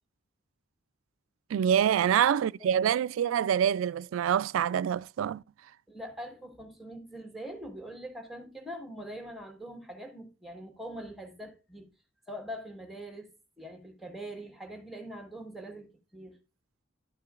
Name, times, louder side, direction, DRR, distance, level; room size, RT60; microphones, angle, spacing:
voice 1, 1.5-5.4, right 9 dB, 75° right, 0.3 m, -26 dB
voice 2, 5.9-11.9 12.3-16.4, equal, ahead, 1.4 m, -43 dB
12.0 x 6.7 x 2.4 m
head